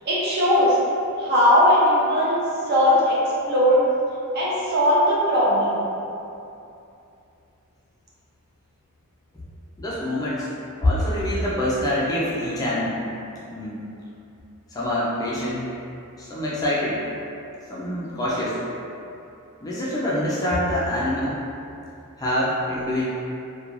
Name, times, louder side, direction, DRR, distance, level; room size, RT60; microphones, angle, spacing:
voice 1, 0.1-0.8 1.2-2.4 2.7-3.2 3.5-3.8 4.3-5.8, equal, 45° right, -6 dB, 0.6 m, -19 dB
voice 2, 9.8-10.5 10.8-13.0 13.5-13.8 14.7-15.7 16.2-17.0 17.7-18.6 19.6-21.4 22.2-23.0, left 1 dB, 15° left, -8 dB, 0.3 m, -25 dB
2.4 x 2.2 x 3.0 m, 2.7 s
head